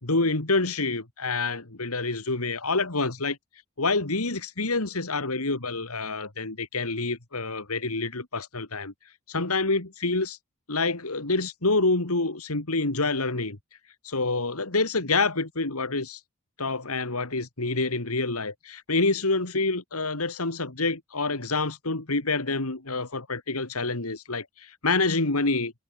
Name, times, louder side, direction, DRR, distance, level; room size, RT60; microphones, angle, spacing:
voice 1, 0.0-3.4 3.8-8.9 9.3-10.4 10.7-13.6 14.0-16.2 16.6-25.7, left 3 dB, 85° left, 2.7 m, -27 dB
head